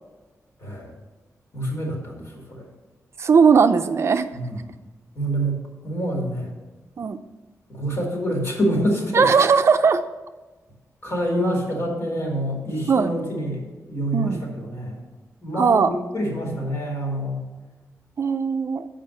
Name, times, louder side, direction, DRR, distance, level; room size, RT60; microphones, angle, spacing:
voice 1, 0.6-0.9 1.5-2.7 4.3-4.7 5.1-6.5 7.7-9.3 11.0-15.0 15.4-17.4, right 1 dB, 50° left, -1 dB, 2.3 m, -26 dB
voice 2, 3.2-4.3 7.0-7.2 9.1-10.0 12.9-13.1 14.1-14.4 15.6-15.9 18.2-18.9, right 5 dB, 50° right, 9 dB, 0.4 m, -18 dB
7.2 x 5.0 x 6.6 m, 1.2 s
wide cardioid pair, 145°, 6 cm